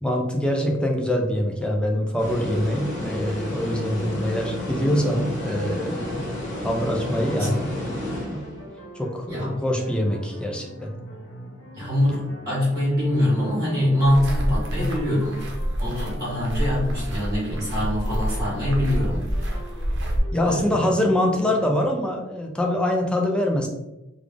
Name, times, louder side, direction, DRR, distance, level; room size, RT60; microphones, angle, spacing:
voice 1, 0.0-8.4 9.0-10.9 20.3-23.7, left 1 dB, 5° left, 1 dB, 0.5 m, -24 dB
sound 1, 2.2-8.8, left 1 dB, 40° left, 1.4 m, -32 dB
sound 2, 4.6-21.8, equal, 80° left, 0.8 m, -44 dB
voice 2, 7.4-7.7 9.3-9.6 11.8-15.5 15.8-19.5 20.4-20.8, left 1 dB, 20° right, -8 dB, 1.3 m, -24 dB
sound 3, 14.0-20.2, equal, 65° right, 0.8 m, -27 dB
3.5 x 2.4 x 3.4 m, 0.95 s
head